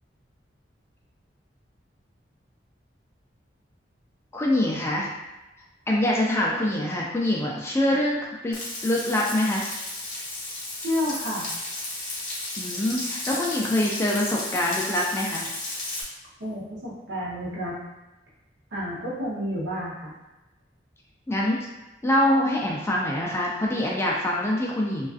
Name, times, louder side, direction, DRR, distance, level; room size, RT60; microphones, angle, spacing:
voice 1, 4.3-5.1 5.9-9.7 12.6-15.5 21.3-21.6 22.0-25.1, left 1 dB, 15° left, -3 dB, 0.3 m, -24 dB
Frying (food), 8.5-16.0, left 2 dB, 45° left, 0.7 m, -33 dB
voice 2, 10.8-11.5 16.4-17.8 18.7-20.1, equal, 65° right, -6 dB, 0.8 m, -30 dB
2.4 x 2.4 x 2.4 m, 1.0 s
head